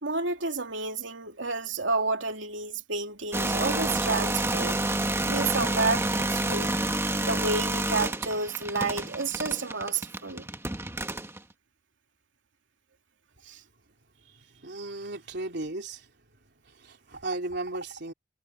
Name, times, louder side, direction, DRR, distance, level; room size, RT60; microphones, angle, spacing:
voice 1, 0.0-4.8 5.3-6.7 7.2-10.5 13.5-13.6, right 3 dB, 80° right, 3.0 m, -30 dB
sound 1, 3.3-11.4, right 2 dB, 15° right, 1.7 m, -29 dB
voice 2, 14.2-16.1 16.7-18.1, right 2 dB, 65° right, 3.6 m, -36 dB
head